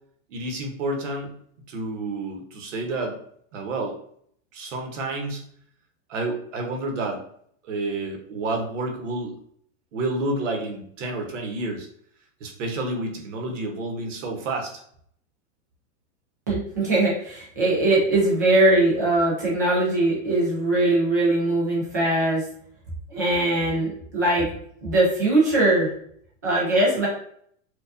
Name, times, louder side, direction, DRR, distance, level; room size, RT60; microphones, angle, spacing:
voice 1, 0.3-1.3 1.7-3.2 3.5-4.0 4.5-5.4 6.1-7.2 7.6-9.4 9.9-11.9 12.4-14.8, right 2 dB, 65° right, 3 dB, 1.0 m, -29 dB
voice 2, 16.5-22.4 23.1-24.5 24.8-25.9 26.4-27.1, right 2 dB, 15° right, -5 dB, 0.3 m, -21 dB
4.5 x 2.3 x 2.5 m, 0.64 s
supercardioid pair, 180°, 39 cm